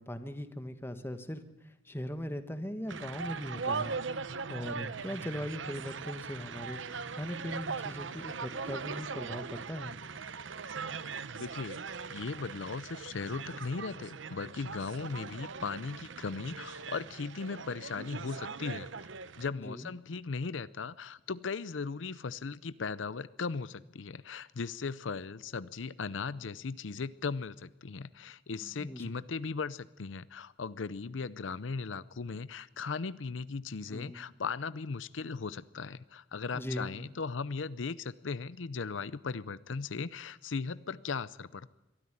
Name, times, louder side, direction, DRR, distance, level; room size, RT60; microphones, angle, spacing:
voice 1, 0.0-1.4 1.8-3.9 4.5-6.8 7.1-10.0 19.5-19.9 28.6-29.1 33.9-34.2 36.5-36.9, equal, 10° left, 9 dB, 1.3 m, -39 dB
sound 1, 2.9-19.5, right 5 dB, 80° right, 0.8 m, -40 dB
voice 2, 11.3-11.8 12.1-18.9 19.4-41.7, left 4 dB, 85° left, 17 dB, 0.6 m, -38 dB
23.0 x 13.5 x 9.9 m, 1.0 s
head